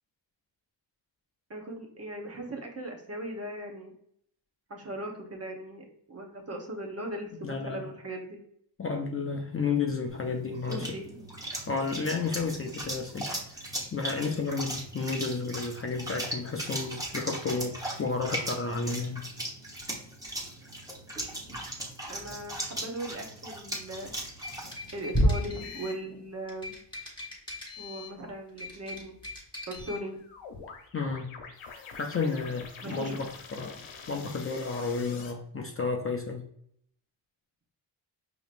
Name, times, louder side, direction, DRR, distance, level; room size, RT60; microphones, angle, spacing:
voice 1, 1.5-3.9 4.7-8.4 10.7-11.5 14.0-14.1 22.1-24.1 24.9-26.8 27.8-29.1 29.7-30.2 32.8-33.2, right 1 dB, 30° right, 2 dB, 1.0 m, -39 dB
voice 2, 7.4-7.9 8.8-10.9 11.7-13.3 13.6-13.7 13.9-19.2 30.9-31.3 32.0-36.4, left 4 dB, 30° left, 2 dB, 0.5 m, -32 dB
sound 1, 10.1-25.6, equal, 10° right, 1.1 m, -36 dB
sound 2, 24.2-26.0 26.5-28.2 28.5-30.0, left 3 dB, 10° left, 1.5 m, -42 dB
sound 3, 25.6-26.0 29.7-35.3, left 5 dB, 80° left, 0.9 m, -46 dB
5.0 x 3.0 x 2.5 m, 0.68 s
cardioid pair, 80°, 46 cm